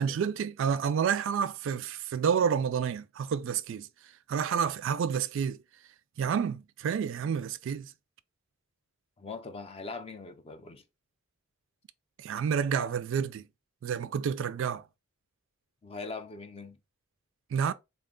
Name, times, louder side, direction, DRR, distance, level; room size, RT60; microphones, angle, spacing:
voice 1, 0.0-5.6 6.2-7.9 12.2-13.5 13.8-14.9 17.5-17.7, right 7 dB, 60° right, 0.3 m, -29 dB
voice 2, 9.2-10.8 15.8-16.8, left 3 dB, 25° left, 0.4 m, -41 dB
4.1 x 2.2 x 3.6 m
head